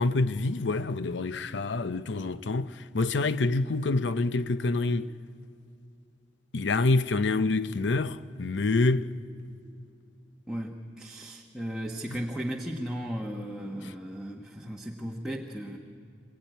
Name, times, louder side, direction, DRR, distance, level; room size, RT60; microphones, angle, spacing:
voice 1, 0.0-5.1 6.5-9.1, left 3 dB, 85° left, 0.6 m, -27 dB
voice 2, 10.5-15.8, equal, 5° right, 1.2 m, -36 dB
27.0 x 17.5 x 9.2 m
head